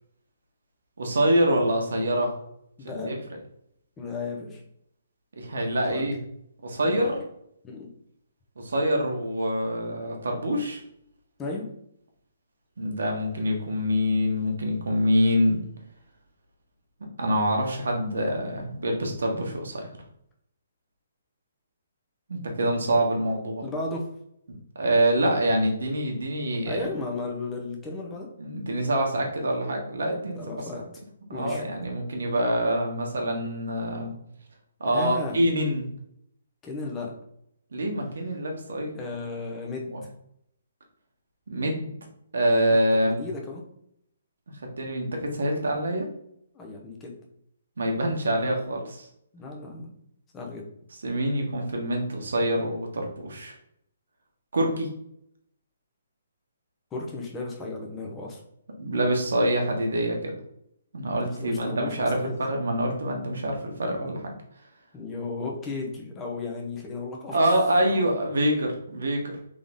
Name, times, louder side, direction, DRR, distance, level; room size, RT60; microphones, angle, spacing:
voice 1, 1.0-2.4 2.8-3.2 5.4-6.2 6.6-7.2 8.6-10.8 12.8-15.6 17.2-19.8 22.3-23.6 24.8-26.9 28.4-30.4 30.8-30.9 31.3-34.1 34.8-35.9 37.7-38.9 39.9-40.0 41.5-41.9 42.3-43.2 44.8-46.1 47.8-49.1 51.0-53.5 54.5-54.9 58.8-60.3 60.9-62.2 62.5-64.3 67.3-69.4, equal, 80° right, 1 dB, 1.4 m, -25 dB
voice 2, 2.8-3.1 4.0-4.6 5.9-6.1 7.0-7.1 7.6-7.9 11.4-11.6 23.6-24.1 26.7-28.3 30.4-30.8 31.3-31.6 34.9-35.4 36.6-37.1 38.9-40.0 43.1-43.6 46.5-47.2 49.3-49.9 50.3-50.7 56.9-58.4 61.2-62.3 64.9-67.4 67.9-68.2, left 3 dB, 15° left, -1 dB, 0.9 m, -34 dB
3.8 x 3.7 x 3.6 m, 0.74 s
hypercardioid pair, 160°, 0 cm